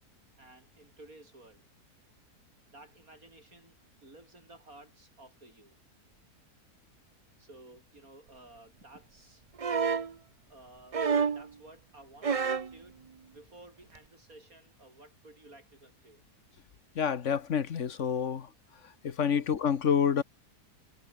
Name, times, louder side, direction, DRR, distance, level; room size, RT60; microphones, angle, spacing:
voice 1, 0.4-1.6 2.7-3.8 4.0-5.8 7.4-9.4 10.5-13.0 13.3-16.2, right 2 dB, 60° right, 7.0 m, -54 dB
sound 1, 9.6-10.1 10.9-11.5 12.2-12.7 13.9-14.0, right 5 dB, 45° right, 0.5 m, -28 dB
voice 2, 16.9-18.5 19.0-20.2, left 7 dB, 50° left, 1.3 m, -28 dB
omnidirectional pair, 1.7 m